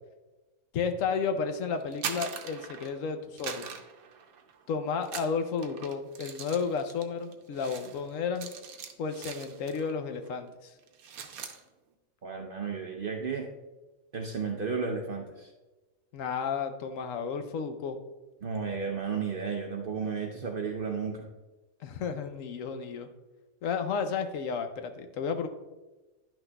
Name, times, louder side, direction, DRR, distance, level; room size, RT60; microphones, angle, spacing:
voice 1, 0.7-3.7 4.7-8.5 9.0-10.7 16.1-18.0 21.8-23.1 23.6-25.5, left 5 dB, 70° left, 7 dB, 0.9 m, -32 dB
sound 1, 1.8-3.0 3.4-4.6 5.0-10.0 10.2-10.5 10.8-11.6, right 7 dB, 85° right, 1.1 m, -41 dB
voice 2, 12.2-13.5 14.1-15.5 18.4-21.3, right 5 dB, 55° right, 2 dB, 0.6 m, -33 dB
11.0 x 6.0 x 2.2 m, 1.1 s
omnidirectional pair, 1.5 m